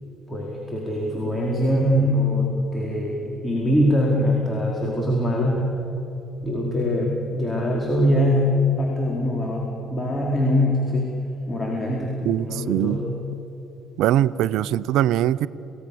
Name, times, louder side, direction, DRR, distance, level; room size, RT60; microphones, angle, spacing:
voice 1, 0.3-5.7 6.4-11.1 11.5-13.1, left 1 dB, 20° left, -2 dB, 4.6 m, -23 dB
voice 2, 12.2-13.0 14.0-15.5, right 12 dB, 70° right, 19 dB, 0.6 m, -21 dB
28.5 x 18.5 x 7.1 m, 3.0 s
hypercardioid pair, 55°, 0 cm